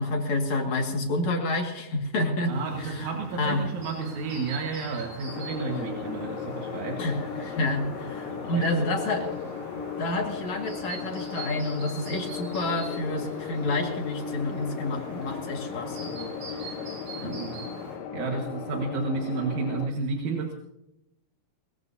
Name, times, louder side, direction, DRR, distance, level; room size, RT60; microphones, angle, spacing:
voice 1, 0.0-3.1 3.4-3.6 5.7-5.9 7.0-9.4 9.7-16.8 17.2-17.4, left 2 dB, 55° left, 2 dB, 3.2 m, -29 dB
voice 2, 2.5-7.0 8.3-8.8 17.2-17.6 18.1-20.5, right 4 dB, 65° right, 1 dB, 2.8 m, -31 dB
Chirp tweet, 2.5-18.0, right 2 dB, 90° right, 8.3 m, -43 dB
sound 1, 5.3-19.9, left 8 dB, 85° left, 2.7 m, -36 dB
22.5 x 22.0 x 2.7 m, 0.86 s
omnidirectional pair, 3.9 m